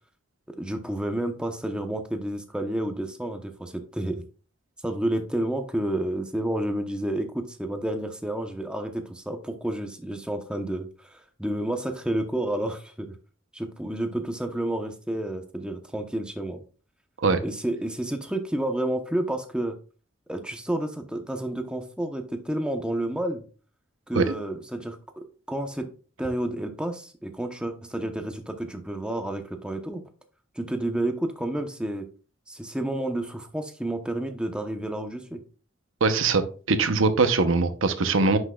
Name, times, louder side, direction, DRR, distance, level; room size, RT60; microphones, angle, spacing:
voice 1, 0.6-4.2 4.8-13.1 13.5-16.6 17.4-19.8 20.3-23.4 24.1-25.9 26.2-30.0 30.6-32.1 32.5-35.4, right 1 dB, 5° right, 6 dB, 0.8 m, -30 dB
voice 2, 36.0-38.4, right 3 dB, 80° right, 10 dB, 0.8 m, -22 dB
9.8 x 6.3 x 2.3 m, 0.38 s
head